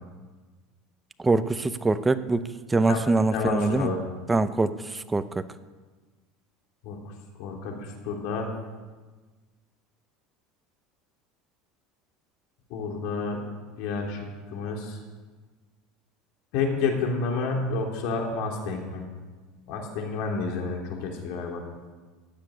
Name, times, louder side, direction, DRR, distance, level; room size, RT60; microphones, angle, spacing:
voice 1, 1.2-3.9 4.3-5.4, right 2 dB, 10° right, 12 dB, 0.6 m, -24 dB
voice 2, 3.3-4.0 6.8-7.0 7.4-7.8 8.0-8.5 12.7-13.4 13.8-14.2 14.5-15.0 16.5-19.0 19.7-21.6, left 4 dB, 60° left, 1 dB, 3.5 m, -29 dB
15.5 x 7.5 x 9.9 m, 1.4 s
supercardioid pair, 145°, 0 cm